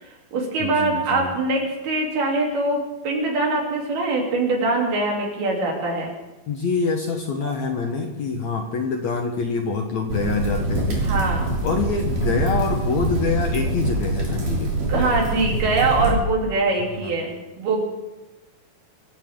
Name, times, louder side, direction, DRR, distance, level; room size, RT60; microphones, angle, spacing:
voice 1, 0.0-6.1 11.0-11.4 14.9-17.8, right 3 dB, 75° right, -1 dB, 5.2 m, -23 dB
voice 2, 0.6-1.3 6.5-11.0 11.6-15.2 17.0-17.1, left 5 dB, 60° left, 3 dB, 2.0 m, -26 dB
sound 1, 10.1-16.1, right 2 dB, 55° right, 4.9 m, -24 dB
25.0 x 15.5 x 3.8 m, 1.1 s
omnidirectional pair, 4.5 m